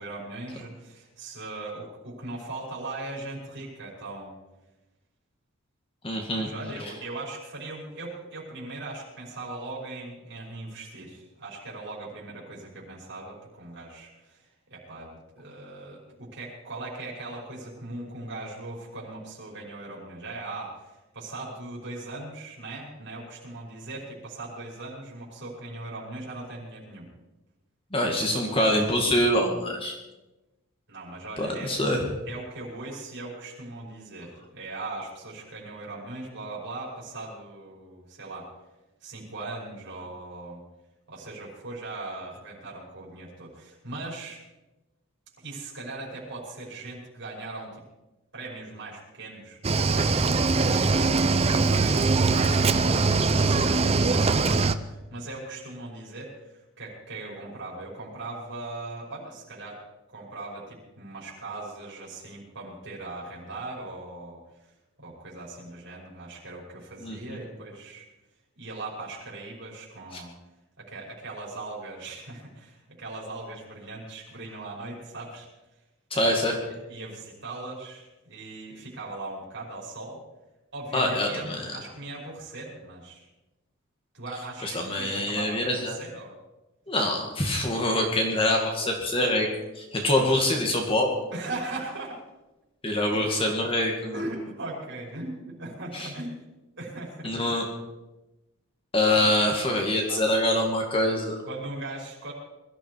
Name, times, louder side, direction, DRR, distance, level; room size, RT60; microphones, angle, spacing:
voice 1, 0.0-4.4 6.3-14.4 14.7-27.1 28.2-28.8 30.9-31.7 32.3-38.5 39.0-40.6 41.1-44.4 45.4-47.7 48.3-50.1 50.6-52.6 52.9-59.8 60.1-64.4 65.0-68.0 68.6-70.3 70.8-75.5 76.6-80.2 80.7-83.2 84.1-86.4 91.3-92.2 93.1-93.2 94.1-96.4 96.8-97.5 99.1-99.4 100.1-100.3 101.4-102.3, right 2 dB, 50° right, -4 dB, 5.8 m, -39 dB
voice 2, 6.0-6.5 27.9-30.0 31.4-32.1 67.0-67.2 76.1-76.6 80.9-81.7 84.6-86.0 86.9-89.5 89.8-91.1 92.8-94.2 95.9-96.1 97.2-97.6 98.9-101.4, left 1 dB, 25° left, 1 dB, 2.1 m, -25 dB
Cricket / Waves surf, 49.6-54.7, right 3 dB, 30° right, 0.6 m, -22 dB
22.0 x 13.0 x 4.8 m, 1.0 s
head